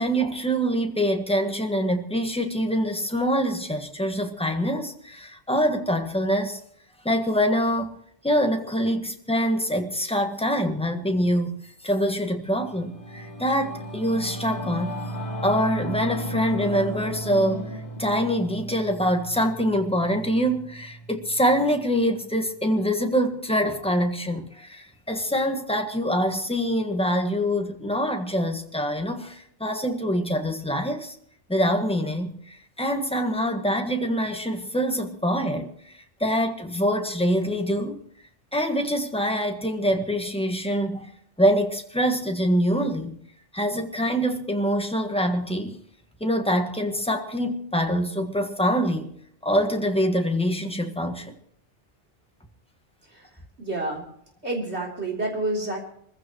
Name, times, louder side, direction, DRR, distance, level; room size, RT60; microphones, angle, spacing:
voice 1, 0.0-6.6 7.0-7.9 8.2-11.6 11.8-15.0 15.4-31.2 31.5-35.9 36.2-38.0 38.5-41.1 41.4-43.2 43.5-45.8 46.2-49.1 49.4-51.3, equal, 5° left, 1.5 m, -25 dB
Singing / Musical instrument, 12.4-22.0, equal, 65° left, 3.2 m, -35 dB
voice 2, 53.6-54.0 54.4-55.9, right 2 dB, 70° right, 4.0 m, -29 dB
25.5 x 15.0 x 3.1 m
omnidirectional pair, 1.2 m